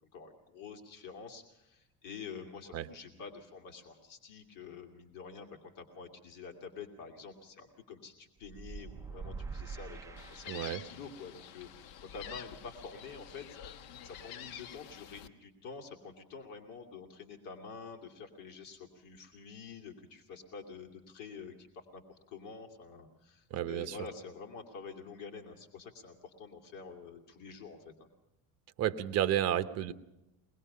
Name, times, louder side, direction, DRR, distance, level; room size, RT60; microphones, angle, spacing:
voice 1, 0.1-13.6 14.0-28.1, left 5 dB, 60° left, 3 dB, 2.7 m, -48 dB
sound 1, 8.4-11.1, right 5 dB, 10° right, 0.6 m, -44 dB
Gull seagull, 10.2-15.3, left 9 dB, 75° left, 1.2 m, -48 dB
voice 2, 10.5-10.8 23.5-24.0 28.8-29.9, right 11 dB, 40° right, 11 dB, 1.0 m, -31 dB
23.5 x 20.0 x 5.5 m, 0.94 s
cardioid pair, 155°, 37 cm